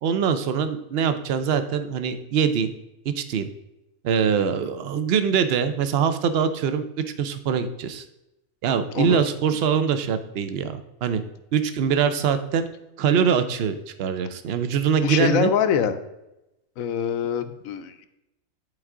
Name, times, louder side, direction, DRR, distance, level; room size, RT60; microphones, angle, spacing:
voice 1, 0.0-2.7 3.1-3.5 4.0-6.8 7.2-8.0 8.6-11.2 11.5-12.7 13.0-15.5, right 7 dB, 60° right, 11 dB, 0.7 m, -23 dB
voice 2, 15.0-15.9 16.8-18.1, left 8 dB, 80° left, 10 dB, 1.1 m, -24 dB
9.8 x 4.7 x 3.7 m, 0.92 s
omnidirectional pair, 1.5 m